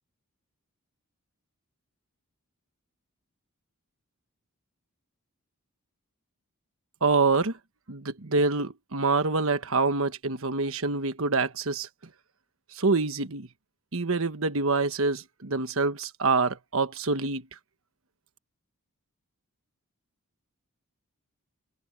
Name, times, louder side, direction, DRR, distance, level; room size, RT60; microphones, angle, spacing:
voice 1, 7.0-7.6 7.9-11.9 12.7-13.5 13.9-17.5, right 3 dB, 65° right, 1.3 m, -26 dB
open air
head